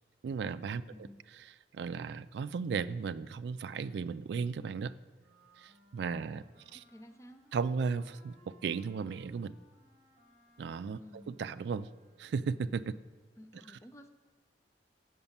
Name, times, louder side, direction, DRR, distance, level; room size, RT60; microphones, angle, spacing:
voice 1, 0.2-0.8 1.4-4.9 5.6-6.4 6.7-6.8 7.5-9.6 10.6-11.9 12.2-13.0 13.7-13.8, right 5 dB, 70° right, 12 dB, 0.3 m, -35 dB
voice 2, 0.9-1.3 6.7-7.4 11.0-11.4 13.4-14.1, equal, 15° left, 7 dB, 0.5 m, -53 dB
sound 1, 5.2-12.5, equal, 35° right, 1.1 m, -65 dB
8.0 x 5.4 x 7.1 m, 1.5 s
head